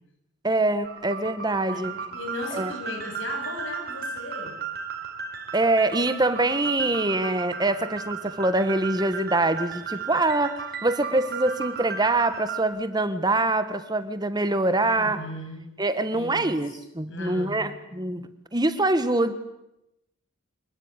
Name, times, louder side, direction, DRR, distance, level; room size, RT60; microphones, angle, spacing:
voice 1, 0.4-1.9 2.5-2.7 5.5-15.2 15.8-19.3, right 2 dB, 20° right, 11 dB, 1.4 m, -24 dB
sound 1, 0.8-12.6, right 6 dB, 50° right, 4.1 m, -35 dB
voice 2, 1.7-4.6 9.9-10.0 14.8-15.6 16.1-17.8, left 2 dB, 65° left, 4 dB, 7.8 m, -37 dB
26.0 x 21.5 x 9.8 m, 0.89 s
head